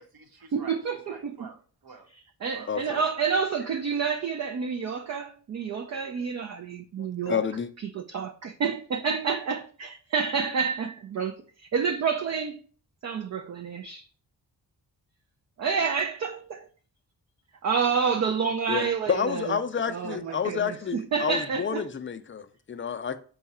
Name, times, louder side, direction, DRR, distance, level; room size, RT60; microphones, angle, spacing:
voice 1, 0.0-2.1 2.5-3.1 20.1-20.2, right 5 dB, 60° right, 1.0 m, -48 dB
voice 2, 0.5-1.5 2.4-7.5 7.8-12.6 13.0-14.0 15.6-16.7 17.6-19.6 19.9-21.8, right 6 dB, 45° right, 0.4 m, -29 dB
voice 3, 2.7-3.0 7.0-7.7 18.7-23.2, left 7 dB, 30° left, 0.4 m, -30 dB
4.7 x 2.3 x 4.1 m
cardioid pair, 60°, 41 cm